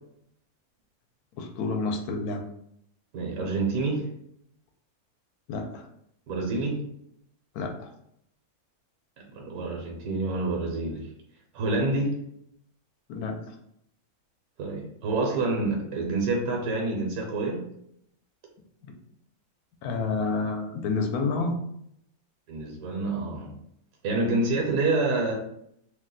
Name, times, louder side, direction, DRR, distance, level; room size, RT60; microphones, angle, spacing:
voice 1, 1.4-2.4 5.5-5.9 7.5-7.9 13.1-13.5 18.8-18.9 19.8-21.6, left 3 dB, 80° left, 4 dB, 1.1 m, -29 dB
voice 2, 3.1-4.0 6.3-6.8 9.3-11.0 11.5-12.1 14.6-17.6 22.5-23.5 24.0-25.3, right 2 dB, 70° right, 0 dB, 1.1 m, -27 dB
2.8 x 2.1 x 3.7 m, 0.74 s
omnidirectional pair, 1.6 m